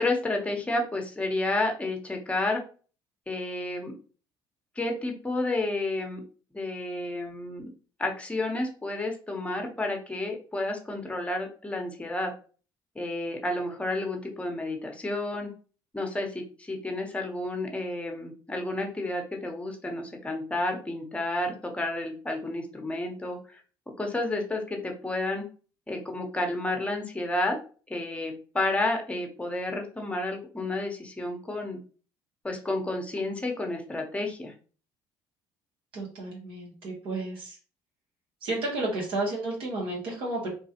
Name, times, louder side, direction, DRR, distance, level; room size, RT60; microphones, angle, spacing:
voice 1, 0.0-2.6 3.3-3.9 4.8-6.2 6.5-7.6 8.0-12.3 12.9-15.5 15.9-23.6 24.0-25.4 25.9-27.6 27.9-31.8 32.4-34.5, left 2 dB, 15° left, 3 dB, 0.9 m, -31 dB
voice 2, 35.9-37.6 38.4-40.5, right 2 dB, 65° right, -3 dB, 1.3 m, -32 dB
3.1 x 2.3 x 2.8 m, 0.38 s
supercardioid pair, 80°, 9 cm